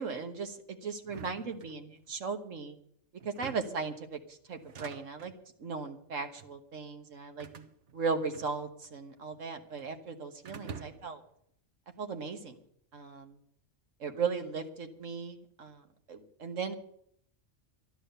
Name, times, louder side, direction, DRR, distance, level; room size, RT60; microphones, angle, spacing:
voice 1, 0.0-2.8 3.2-5.3 5.6-7.5 7.9-11.2 12.0-12.6 12.9-13.4 14.0-16.7, right 5 dB, 85° right, 6 dB, 1.7 m, -37 dB
sound 1, 1.0-2.2 3.2-3.9 4.5-5.4 6.2-6.6 7.4-8.9 9.2-10.0 10.5-11.2, right 6 dB, 65° right, 1.3 m, -48 dB
13.0 x 11.0 x 6.8 m, 0.66 s
omnidirectional pair, 1.3 m